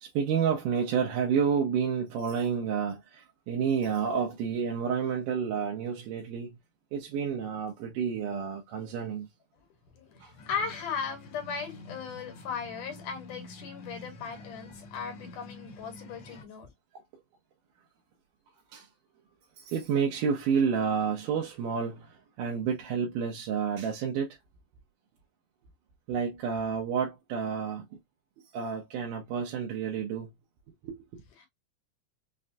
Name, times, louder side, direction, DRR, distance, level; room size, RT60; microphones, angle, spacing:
voice 1, 0.0-6.6 6.9-9.3 10.2-10.3 18.7-18.9 19.6-24.4 26.1-27.9 28.5-30.3 30.8-31.2, right 6 dB, 90° right, 2.4 m, -30 dB
voice 2, 10.0-16.7 31.4-31.5, left 6 dB, 80° left, 2.6 m, -37 dB
sound 1, 10.4-16.4, left 2 dB, 60° left, 1.2 m, -48 dB
6.1 x 2.2 x 2.6 m
omnidirectional pair, 3.6 m